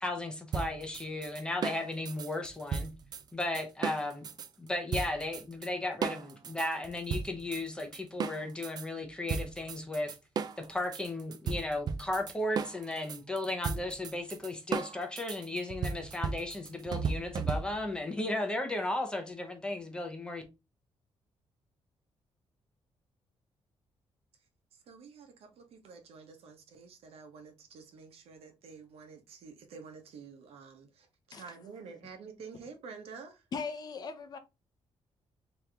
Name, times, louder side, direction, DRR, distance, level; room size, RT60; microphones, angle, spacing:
voice 1, 0.0-2.9 3.3-4.3 4.6-10.2 10.6-20.4, left 2 dB, 10° left, 0.8 m, -35 dB
sound 1, 0.5-4.5 4.9-5.7 6.0-8.9 9.3-18.0, right 6 dB, 40° right, 0.4 m, -36 dB
voice 2, 24.9-33.4, right 5 dB, 80° right, 1.0 m, -49 dB
voice 3, 33.5-34.4, left 5 dB, 40° left, 0.6 m, -38 dB
3.7 x 3.0 x 3.3 m
wide cardioid pair, 170°, 10 cm